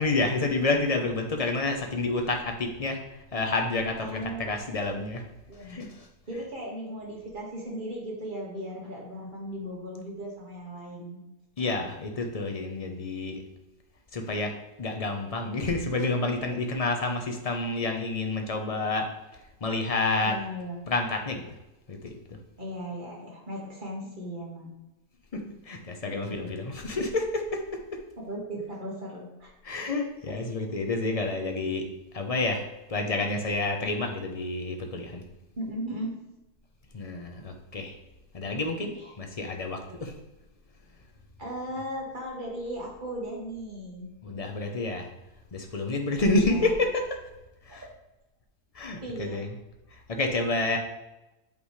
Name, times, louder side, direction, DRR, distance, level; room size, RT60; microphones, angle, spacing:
voice 1, 0.0-3.0 3.3-5.2 5.6-5.9 6.3-6.4 11.6-13.4 14.1-14.5 14.8-19.1 19.6-20.4 20.9-21.4 21.9-22.4 25.3-27.6 29.6-31.8 32.1-35.2 36.9-37.9 38.3-38.9 39.2-40.1 44.2-45.1 45.5-47.2 47.7-47.9 48.7-49.6 50.1-50.8, left 2 dB, 30° left, 3 dB, 0.7 m, -29 dB
voice 2, 4.0-4.6 5.5-5.8 6.3-11.2 20.2-20.8 22.6-24.7 26.1-26.5 28.2-29.5 30.3-30.4 35.6-36.2 38.9-39.1 41.4-44.1 46.2-46.7 47.7-47.8 49.0-49.5, right 1 dB, 30° right, -2 dB, 1.8 m, -37 dB
8.6 x 5.3 x 3.2 m, 0.99 s
omnidirectional pair, 1.7 m